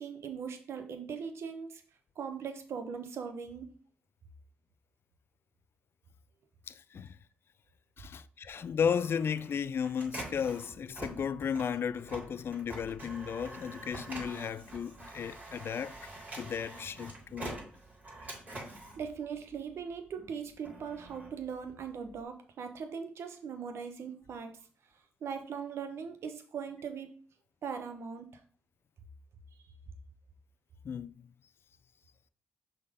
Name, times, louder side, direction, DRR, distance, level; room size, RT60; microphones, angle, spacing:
voice 1, 0.0-1.8 2.2-3.7 19.0-24.5 25.2-27.1 27.6-28.4, right 6 dB, 70° right, 1.0 m, -40 dB
voice 2, 6.7-7.2 8.0-16.0 16.3-17.5 30.8-31.3, left 7 dB, 60° left, 0.4 m, -34 dB
Printer, 8.5-19.9 20.4-22.2, right 1 dB, 35° right, 3.7 m, -46 dB
5.8 x 3.9 x 5.1 m
supercardioid pair, 50°, 5 cm